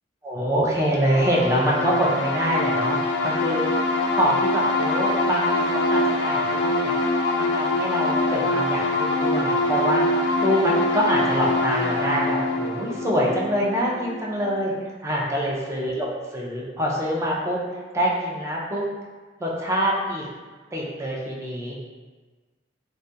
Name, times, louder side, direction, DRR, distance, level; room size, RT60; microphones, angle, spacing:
voice 1, 0.2-3.8 4.1-6.9 7.4-10.0 10.4-14.7 15.0-18.8 19.4-20.3 20.7-21.8, equal, 15° right, -4 dB, 0.4 m, -25 dB
sound 1, 1.0-14.5, left 2 dB, 70° left, 0.3 m, -24 dB
2.3 x 2.1 x 2.6 m, 1.4 s
head